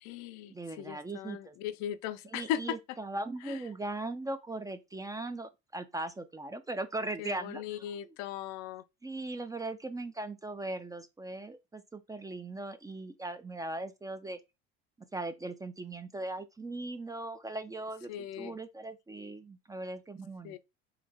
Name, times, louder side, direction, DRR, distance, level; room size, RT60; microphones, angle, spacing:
voice 1, 0.0-2.8 3.5-3.6 7.2-8.8 18.1-18.6 20.4-20.6, left 10 dB, 70° left, 0.4 m, -38 dB
voice 2, 0.5-1.6 2.3-8.1 9.0-14.4 15.1-18.1 18.4-20.6, right 2 dB, 15° right, 0.3 m, -39 dB
3.1 x 2.2 x 3.5 m
supercardioid pair, 80°, 29 cm